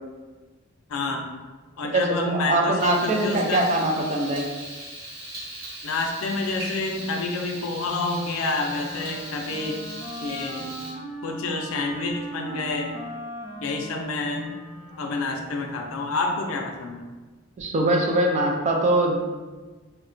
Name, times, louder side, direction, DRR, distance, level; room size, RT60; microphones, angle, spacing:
voice 1, 0.9-1.3 1.8-3.7 5.8-9.8 10.2-10.7 11.2-12.9 13.6-14.6 15.0-17.1, left 3 dB, 80° left, 2 dB, 0.4 m, -28 dB
voice 2, 1.9-4.6 17.6-19.3, right 1 dB, 35° right, 1 dB, 0.3 m, -22 dB
Frying (food), 2.8-10.9, right 1 dB, 50° right, 1.0 m, -39 dB
Wind instrument woodwind instrument, 7.9-16.0, right 1 dB, ahead, 0.7 m, -39 dB
2.8 x 2.1 x 2.5 m, 1.3 s
head